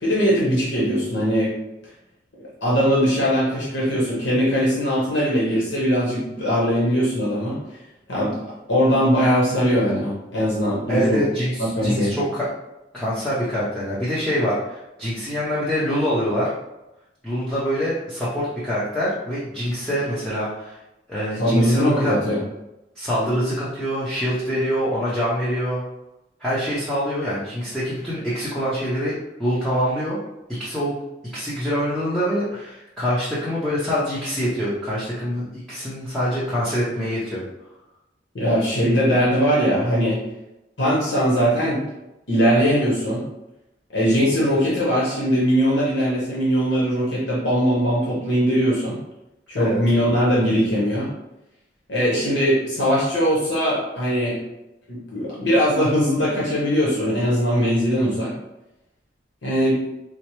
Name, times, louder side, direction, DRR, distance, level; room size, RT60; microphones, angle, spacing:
voice 1, 0.0-1.5 2.4-7.6 8.1-8.4 8.7-11.2 11.6-12.1 21.4-22.4 38.3-40.2 40.8-41.8 42.3-43.2 43.9-49.0 49.5-51.1 51.9-54.4 54.9-58.3 59.4-59.8, equal, 75° left, -6 dB, 1.0 m, -20 dB
voice 2, 10.9-12.5 12.9-16.5 17.2-20.7 21.1-22.1 23.0-25.8 26.4-30.2 30.6-30.9 31.3-37.4 49.5-49.8, equal, 5° left, -11 dB, 0.7 m, -25 dB
4.4 x 2.0 x 3.0 m, 0.92 s
head